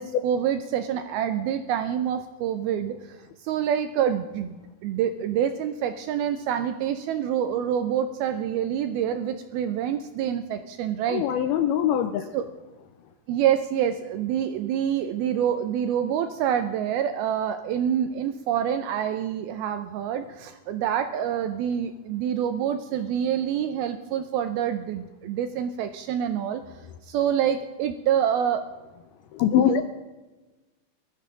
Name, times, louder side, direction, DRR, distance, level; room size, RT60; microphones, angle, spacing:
voice 1, 0.0-11.2 12.3-12.4 13.3-26.6 27.0-28.6 29.6-29.8, right 9 dB, 80° right, 9 dB, 2.2 m, -27 dB
voice 2, 11.1-12.3 29.3-29.8, left 11 dB, 80° left, 9 dB, 2.3 m, -22 dB
19.0 x 13.5 x 3.8 m, 1.2 s
omnidirectional pair, 5.0 m